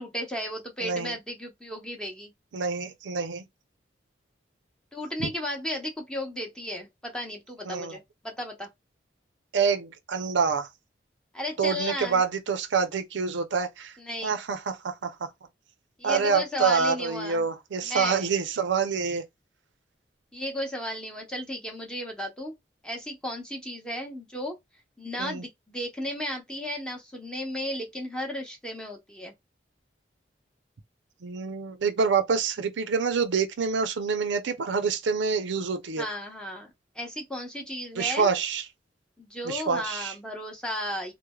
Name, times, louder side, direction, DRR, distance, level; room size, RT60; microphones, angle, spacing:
voice 1, 0.0-2.3 4.9-8.7 11.3-12.2 14.0-14.4 16.0-17.5 17.8-18.3 20.3-22.5 22.8-24.6 25.0-29.3 36.0-38.3 39.2-41.1, equal, 5° left, 0.7 m, -34 dB
voice 2, 0.8-1.2 2.5-3.4 5.2-5.3 7.7-8.0 9.5-10.7 11.6-13.9 14.2-15.1 16.0-19.2 25.2-25.4 31.2-36.0 38.0-38.6 39.4-40.1, right 5 dB, 80° right, 0.5 m, -27 dB
3.1 x 2.0 x 2.2 m
head